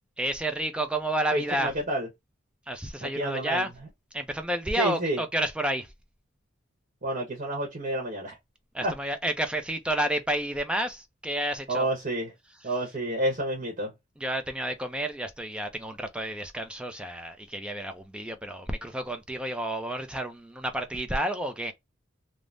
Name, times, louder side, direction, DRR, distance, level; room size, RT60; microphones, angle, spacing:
voice 1, 0.2-1.7 2.7-3.7 4.1-5.9 8.7-11.9 14.2-21.7, right 1 dB, 5° right, 0.4 m, -30 dB
voice 2, 1.3-2.1 3.0-3.9 4.8-5.2 7.0-8.3 8.8-9.0 11.7-12.3 12.6-13.9, right 1 dB, 40° right, 0.9 m, -29 dB
3.3 x 2.0 x 2.5 m
head